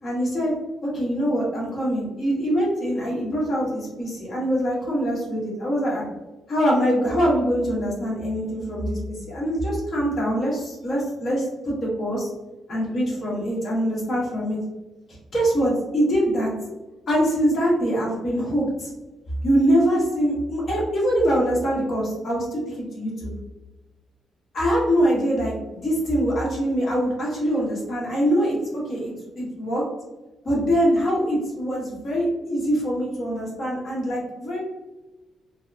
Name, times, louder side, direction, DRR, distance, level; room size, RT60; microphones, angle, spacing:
voice 1, 0.0-0.5 0.8-6.0 6.5-12.3 12.7-14.6 15.3-16.5 17.1-18.9 19.4-23.3 24.5-29.8 30.4-34.6, equal, 45° left, -5 dB, 1.3 m, -23 dB
3.9 x 2.1 x 2.5 m, 1.1 s
cardioid pair, 140°, 0 cm